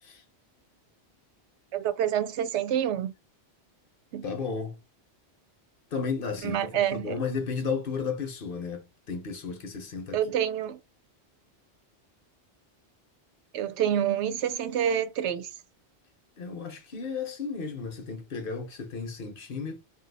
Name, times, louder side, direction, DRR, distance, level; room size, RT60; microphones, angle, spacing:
voice 1, 1.7-3.1 4.1-4.3 6.4-7.2 10.1-10.8 13.5-15.5, right 9 dB, 85° right, 0.9 m, -27 dB
voice 2, 4.2-4.8 5.9-10.2 16.4-19.8, left 5 dB, 60° left, 0.9 m, -33 dB
2.7 x 2.3 x 3.9 m
omnidirectional pair, 1.1 m